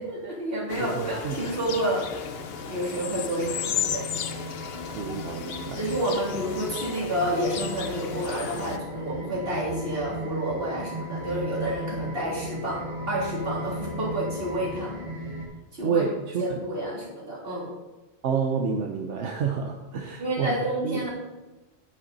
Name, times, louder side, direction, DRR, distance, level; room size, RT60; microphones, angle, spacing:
voice 1, 0.0-2.3 2.7-4.1 5.7-15.0 15.7-16.0 16.4-17.7 20.2-21.1, right 1 dB, 55° right, -4 dB, 3.3 m, -30 dB
sound 1, 0.7-8.8, left 8 dB, 65° left, 0.9 m, -35 dB
voice 2, 0.8-1.4 4.9-5.8 15.8-16.4 18.2-20.6 20.8-21.0, right 5 dB, 85° right, 2 dB, 1.2 m, -28 dB
sound 2, 1.4-15.5, equal, 25° right, 2.6 m, -37 dB
9.7 x 9.2 x 4.0 m, 1.1 s
omnidirectional pair, 1.2 m